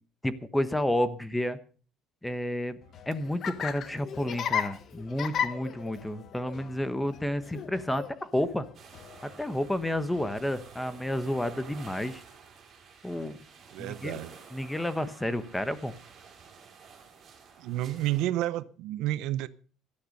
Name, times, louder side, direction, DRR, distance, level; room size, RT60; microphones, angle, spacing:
voice 1, 0.2-1.6 2.2-2.8 3.1-8.7 9.2-12.2 13.0-13.4 13.8-14.2 14.5-15.9, left 1 dB, 5° left, 1.1 m, -30 dB
Laughter, 2.8-10.4, left 8 dB, 40° left, 1.2 m, -36 dB
sound 1, 8.7-18.3, right 6 dB, 35° right, 5.3 m, -51 dB
voice 2, 13.7-14.3 17.6-19.5, right 14 dB, 70° right, 0.8 m, -30 dB
17.0 x 12.0 x 5.4 m
cardioid pair, 145°, 0 cm